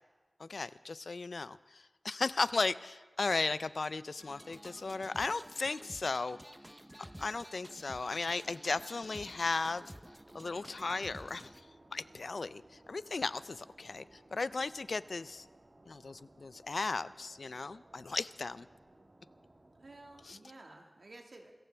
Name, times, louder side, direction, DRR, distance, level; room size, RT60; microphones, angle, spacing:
voice 1, 0.4-6.4 7.2-9.9 10.3-11.5 11.9-15.5 15.9-18.7 20.3-20.4, left 3 dB, 85° left, 16 dB, 0.4 m, -36 dB
sound 1, 4.2-11.6, equal, 10° right, 0.6 m, -52 dB
sound 2, 9.0-20.4, right 1 dB, 60° right, 1.9 m, -61 dB
voice 2, 19.8-21.5, right 2 dB, 80° right, 2 dB, 1.8 m, -53 dB
26.0 x 14.5 x 3.4 m, 1.3 s
wide cardioid pair, 50°, 0 cm